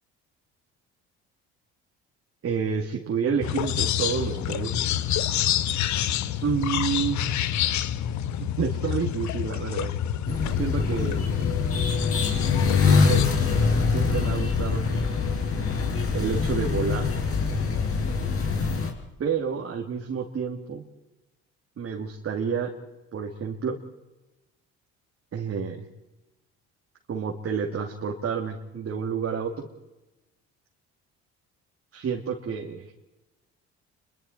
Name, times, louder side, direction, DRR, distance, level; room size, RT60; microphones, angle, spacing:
voice 1, 2.4-4.7 6.4-7.3 8.4-9.9 10.6-11.3 12.8-13.3 13.9-15.2 16.1-17.1 19.2-20.8 21.8-22.7 23.1-23.8 25.3-25.8 27.1-29.5 31.9-32.9, right 6 dB, 45° right, 0 dB, 3.1 m, -29 dB
sound 1, 3.4-13.3, left 11 dB, 65° left, 1.3 m, -28 dB
sound 2, 10.3-18.9, left 5 dB, 45° left, 5.5 m, -24 dB
29.0 x 23.5 x 4.7 m, 1.0 s
supercardioid pair, 85°, 31 cm